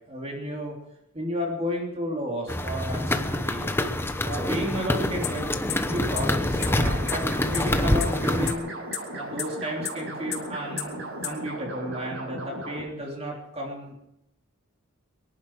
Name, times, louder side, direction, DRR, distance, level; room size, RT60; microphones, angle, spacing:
voice 1, 0.1-0.7 1.1-3.7 4.2-5.5 5.8-8.7 9.1-13.9, equal, 30° right, -1 dB, 3.2 m, -32 dB
sound 1, 2.5-8.5, left 1 dB, 10° left, 0.9 m, -26 dB
sound 2, 5.2-5.3 5.7-5.8 6.2-6.3 6.6-6.7 7.1-7.2 7.5-7.6 8.0-8.1 8.5-8.6 8.9-9.0 9.4-9.5 9.8-9.9 10.3-10.4 10.8-10.9 11.2-11.3, left 14 dB, 85° left, 2.4 m, -28 dB
sound 3, 6.5-12.8, right 1 dB, 55° right, 6.2 m, -37 dB
24.0 x 11.0 x 4.8 m, 0.81 s
head